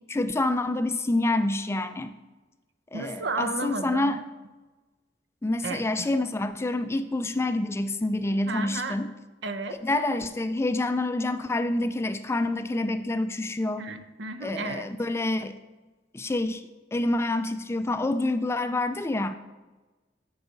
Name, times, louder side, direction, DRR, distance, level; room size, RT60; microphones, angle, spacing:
voice 1, 0.1-2.1 2.9-4.2 5.4-9.1 9.8-13.8 14.4-15.6 16.1-16.6 16.9-19.4, left 2 dB, 15° left, 10 dB, 0.3 m, -27 dB
voice 2, 2.9-4.2 5.6-6.1 8.4-9.0 9.4-9.8 13.8-14.9, right 3 dB, 70° right, 9 dB, 0.7 m, -33 dB
8.0 x 4.8 x 6.4 m, 1.2 s
head